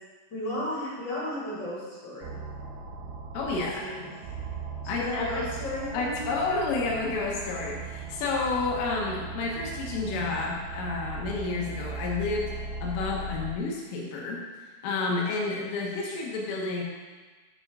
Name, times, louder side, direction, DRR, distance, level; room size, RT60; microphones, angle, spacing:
voice 1, 0.3-2.4 3.5-4.1 4.8-6.3, left 1 dB, 25° left, -9 dB, 2.7 m, -34 dB
sound 1, 2.2-13.5, right 4 dB, 90° right, 2.2 m, -38 dB
voice 2, 3.3-3.8 4.9-5.5 5.9-12.5 12.8-14.4 14.8-16.8, left 3 dB, 80° left, -2 dB, 3.7 m, -30 dB
8.8 x 4.9 x 5.5 m, 1.3 s
omnidirectional pair, 5.8 m